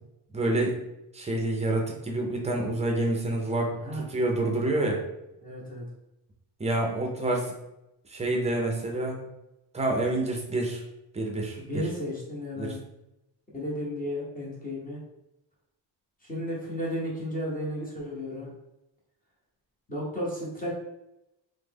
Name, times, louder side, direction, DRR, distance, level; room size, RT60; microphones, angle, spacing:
voice 1, 0.3-0.8 1.1-5.0 6.6-7.5 8.1-9.2 9.7-10.8 11.1-11.8 12.6-12.8, right 2 dB, 15° right, 0 dB, 0.5 m, -28 dB
voice 2, 5.4-5.8 11.6-12.8 13.5-15.0 16.3-18.5 19.9-20.7, equal, 20° left, -5 dB, 0.9 m, -33 dB
3.1 x 2.1 x 3.4 m, 0.89 s
cardioid pair, 140°, 46 cm